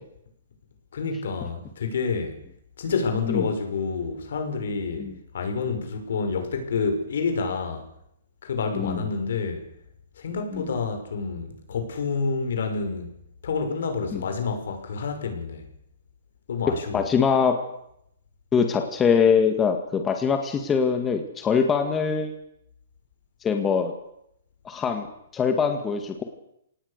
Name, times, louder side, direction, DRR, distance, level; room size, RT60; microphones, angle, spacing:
voice 1, 0.9-2.4 2.8-7.8 8.4-9.6 10.2-13.1 13.4-15.6 16.5-17.1, left 4 dB, 70° left, 6 dB, 6.0 m, -28 dB
voice 2, 16.9-17.6 18.5-22.3 23.4-23.9 24.7-25.1 25.3-26.2, left 6 dB, 15° left, 5 dB, 1.9 m, -23 dB
25.5 x 18.5 x 6.7 m, 0.75 s
hypercardioid pair, 160°, 0 cm